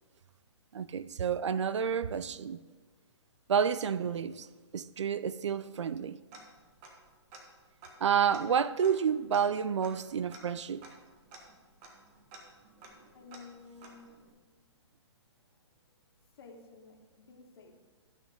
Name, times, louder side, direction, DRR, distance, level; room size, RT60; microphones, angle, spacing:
voice 1, 0.7-2.6 3.5-4.5 4.7-6.2 8.0-10.8, right 7 dB, 75° right, 0.4 m, -30 dB
Tick-tock, 6.3-7.1 7.3-7.4 7.8-14.3, right 2 dB, 30° right, 1.4 m, -53 dB
voice 2, 13.1-14.7 15.4-15.6 16.3-17.8, left 4 dB, 55° left, 1.7 m, -53 dB
13.0 x 6.3 x 3.6 m
hypercardioid pair, 130°, 15 cm